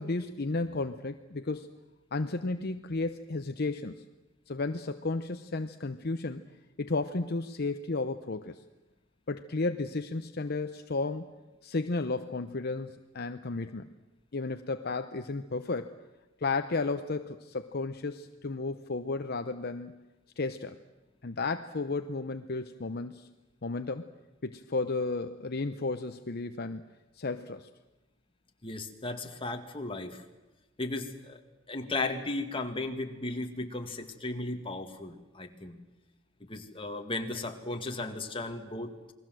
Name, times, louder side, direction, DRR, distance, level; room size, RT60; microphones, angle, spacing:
voice 1, 0.0-1.7 2.1-4.0 4.5-6.4 6.8-8.6 9.3-11.3 11.6-13.9 14.3-15.9 16.4-20.0 20.4-20.8 21.2-23.3 23.6-24.1 24.4-26.8 27.1-27.7, left 3 dB, 55° left, 8 dB, 0.8 m, -33 dB
voice 2, 28.6-30.2 30.8-31.4 31.7-35.8 36.4-38.9, left 2 dB, 25° left, 4 dB, 2.2 m, -35 dB
29.0 x 21.0 x 7.8 m, 1.1 s
head